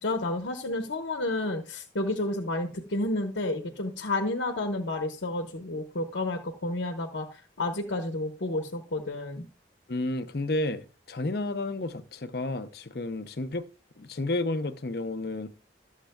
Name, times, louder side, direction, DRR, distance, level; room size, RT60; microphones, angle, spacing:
voice 1, 0.0-7.3 7.6-9.5, left 2 dB, 80° left, 1.0 m, -30 dB
voice 2, 9.9-13.6 14.0-15.5, left 2 dB, 55° left, 0.7 m, -31 dB
13.0 x 7.3 x 2.2 m
head